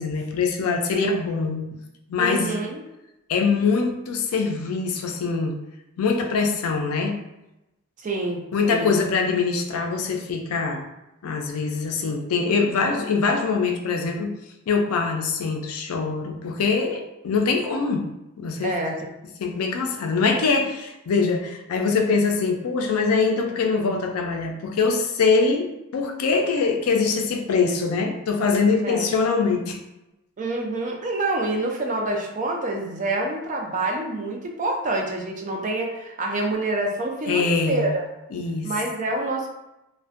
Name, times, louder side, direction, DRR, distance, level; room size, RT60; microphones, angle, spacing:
voice 1, 0.0-1.7 2.1-2.6 3.3-5.5 6.0-7.2 8.5-10.9 11.2-14.3 14.7-18.0 18.4-18.7 19.4-29.8 37.3-38.0 38.3-38.7, left 4 dB, 75° left, 3 dB, 0.4 m, -23 dB
voice 2, 2.2-2.8 8.0-8.9 18.6-19.0 28.8-29.1 30.4-38.1 38.6-39.5, right 2 dB, 35° right, 1 dB, 0.3 m, -27 dB
2.5 x 2.1 x 2.4 m, 0.92 s
head